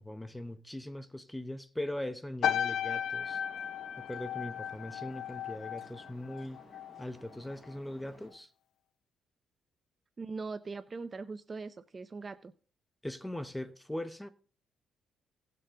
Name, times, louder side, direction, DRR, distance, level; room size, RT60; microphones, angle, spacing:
voice 1, 0.0-3.4 4.0-6.6 7.0-8.5 13.0-14.3, left 1 dB, 5° left, 0.9 m, -40 dB
sound 1, 2.4-7.0 7.3-7.7, left 9 dB, 65° left, 0.4 m, -35 dB
sound 2, 3.2-8.3, left 1 dB, 30° left, 6.2 m, -57 dB
voice 2, 10.2-12.5, right 4 dB, 30° right, 0.6 m, -41 dB
17.5 x 6.8 x 3.8 m
cardioid pair, 105°, 0 cm